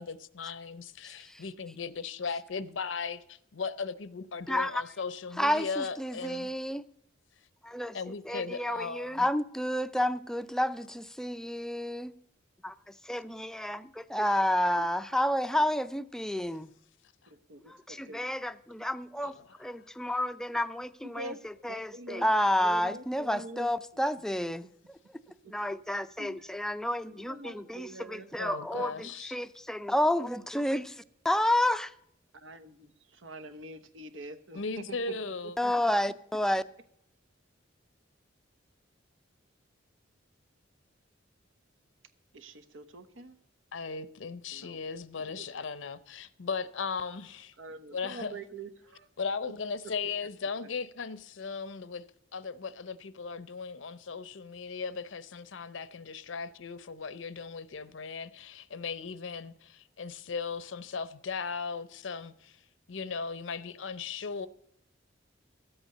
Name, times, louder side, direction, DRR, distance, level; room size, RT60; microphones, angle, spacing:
voice 1, 0.0-6.5 7.9-9.3 19.2-19.7 28.4-29.4 34.5-35.6 43.7-47.5 47.9-48.4 49.2-52.0 52.3-62.6 62.9-64.5, left 5 dB, 75° left, 0.7 m, -37 dB
voice 2, 4.5-4.8 5.4-6.8 7.6-8.0 8.2-12.2 12.6-12.7 13.1-16.7 17.7-21.3 21.6-24.7 25.5-31.0 31.2-31.9 35.6-36.6, left 1 dB, 5° left, 0.4 m, -30 dB
voice 3, 17.3-18.3 21.1-21.4 21.7-23.7 25.4-25.7 26.2-26.4 27.0-28.5 29.0-29.1 32.3-35.7 42.3-43.3 44.5-44.8 45.1-45.5 47.6-49.1 50.6-50.7, right 2 dB, 85° right, 1.0 m, -45 dB
13.0 x 8.0 x 6.6 m
head